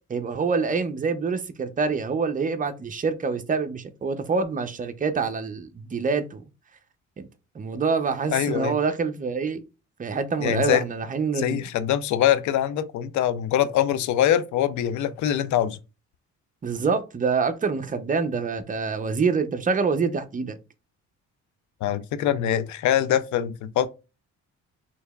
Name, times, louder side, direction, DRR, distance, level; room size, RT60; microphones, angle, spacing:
voice 1, 0.1-6.4 7.2-7.3 7.5-9.6 10.0-11.6 16.6-20.6, right 5 dB, 25° right, 0.6 m, -26 dB
voice 2, 8.3-8.8 10.4-10.8 11.4-15.8 21.8-23.9, left 11 dB, 75° left, 0.5 m, -23 dB
4.4 x 2.9 x 2.3 m
cardioid pair, 90°, 30 cm